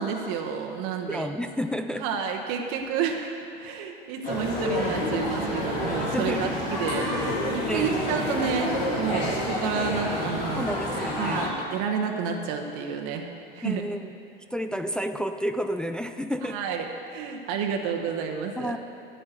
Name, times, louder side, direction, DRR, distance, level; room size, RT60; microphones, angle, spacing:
voice 1, 0.0-1.3 2.0-3.3 3.6-10.7 11.2-13.2 13.5-13.8 16.4-18.7, right 6 dB, 50° right, 3 dB, 1.1 m, -30 dB
voice 2, 1.1-2.1 6.1-6.6 7.7-8.1 10.5-11.6 13.6-14.1 14.5-16.6 18.6-18.8, equal, 5° left, 8 dB, 0.3 m, -30 dB
sound 1, 4.2-11.5, left 1 dB, 80° left, 3.5 m, -28 dB
10.0 x 7.9 x 8.1 m, 2.6 s
figure-of-eight pair, 75°, 29 cm